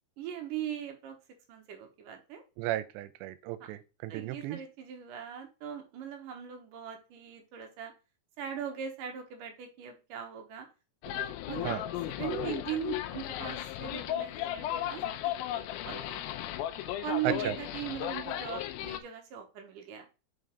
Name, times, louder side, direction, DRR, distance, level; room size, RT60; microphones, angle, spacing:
voice 1, 0.2-1.2 1.5-2.4 3.6-3.7 4.1-7.9 8.4-10.7 11.2-11.7 12.1-16.2 16.8-20.1, right 9 dB, 65° right, 2.2 m, -40 dB
voice 2, 2.6-4.6 11.6-11.8 17.2-17.6, right 13 dB, 90° right, 2.9 m, -34 dB
sound 1, 11.0-19.0, left 13 dB, 90° left, 2.1 m, -35 dB
5.8 x 5.4 x 5.0 m
omnidirectional pair, 4.9 m